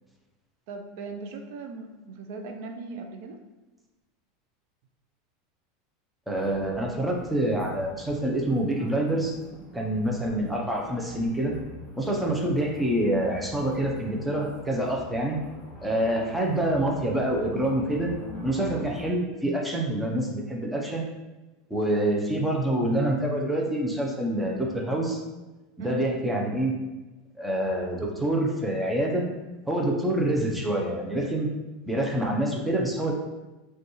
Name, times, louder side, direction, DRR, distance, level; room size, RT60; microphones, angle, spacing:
voice 1, 0.7-3.4 25.8-26.0, right 3 dB, 65° right, 5 dB, 0.4 m, -38 dB
voice 2, 6.3-9.3 9.7-11.5 12.0-15.4 15.8-18.1 18.4-21.0 21.7-25.2 25.8-26.7 27.4-29.2 29.7-31.5 31.9-33.1, right 1 dB, 5° right, -1 dB, 0.6 m, -26 dB
sound 1, 6.4-19.1, equal, 15° left, 1.0 m, -45 dB
5.1 x 2.3 x 3.0 m, 1.1 s
supercardioid pair, 145°, 0 cm